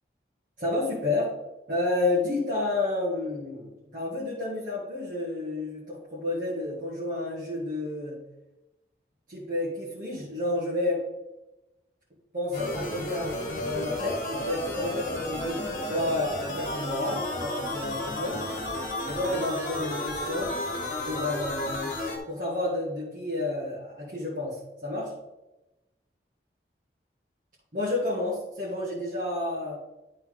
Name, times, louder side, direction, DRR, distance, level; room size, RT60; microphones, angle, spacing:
voice 1, 0.6-1.4 1.7-8.2 9.3-11.0 12.3-18.5 19.1-20.6 21.1-21.9 22.3-25.2 27.7-29.8, left 2 dB, 45° right, -8 dB, 2.2 m, -30 dB
sound 1, 12.5-22.2, left 1 dB, 45° left, 1.5 m, -32 dB
11.5 x 4.3 x 4.0 m, 1.0 s
head